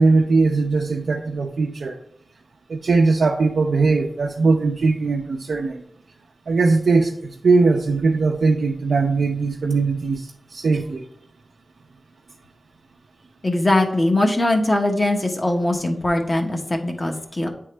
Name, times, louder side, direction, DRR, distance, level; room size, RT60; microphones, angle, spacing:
voice 1, 0.0-2.0 2.7-5.8 6.5-11.1, right 3 dB, 80° right, 0 dB, 0.5 m, -20 dB
voice 2, 13.4-17.5, left 1 dB, 30° left, 2 dB, 1.1 m, -21 dB
9.0 x 3.6 x 3.3 m, 0.71 s
wide cardioid pair, 95°, 0 cm